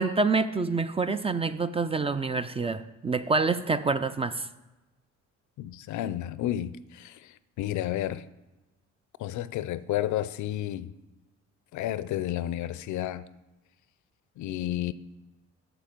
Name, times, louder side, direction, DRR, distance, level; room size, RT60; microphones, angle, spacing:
voice 1, 0.0-4.5, right 4 dB, 20° right, 0.3 m, -27 dB
voice 2, 5.6-8.3 9.2-11.0 11.7-13.3 14.4-14.9, left 13 dB, 75° left, 0.5 m, -31 dB
7.4 x 7.0 x 5.2 m
cardioid pair, 90°, 30 cm